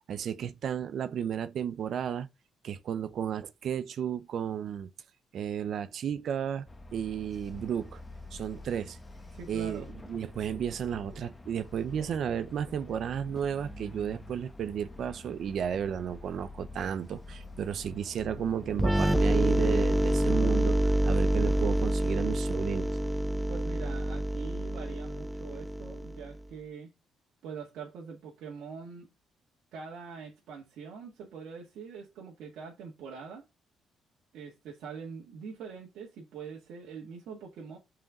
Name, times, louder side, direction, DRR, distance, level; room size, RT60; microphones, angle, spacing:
voice 1, 0.1-2.3 2.6-4.9 5.3-6.7 6.9-8.0 8.3-9.0 9.5-22.9, right 8 dB, 65° right, 0.7 m, -33 dB
sound 1, 6.7-21.9, left 2 dB, 20° left, 1.2 m, -46 dB
voice 2, 9.3-9.9 23.5-26.9 27.4-29.1 29.7-33.4 34.3-37.8, right 5 dB, 80° right, 2.1 m, -44 dB
sound 2, 18.8-26.4, right 1 dB, 5° right, 0.5 m, -27 dB
5.8 x 5.0 x 5.2 m
cardioid pair, 90°, 0 cm